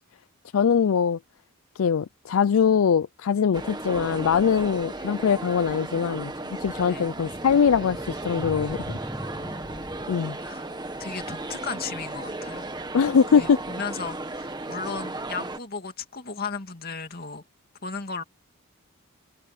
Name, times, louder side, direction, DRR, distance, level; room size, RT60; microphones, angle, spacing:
voice 1, 0.5-1.2 1.8-6.3 6.6-9.0 10.1-10.4 12.9-13.6, left 6 dB, 70° left, 0.4 m, -22 dB
sound 1, 3.5-15.6, right 2 dB, 20° right, 1.5 m, -35 dB
sound 2, 7.5-11.0, equal, 5° right, 0.4 m, -39 dB
voice 2, 9.2-9.8 10.4-10.7 11.0-12.7 13.3-17.4 17.8-18.2, left 5 dB, 45° left, 2.5 m, -35 dB
head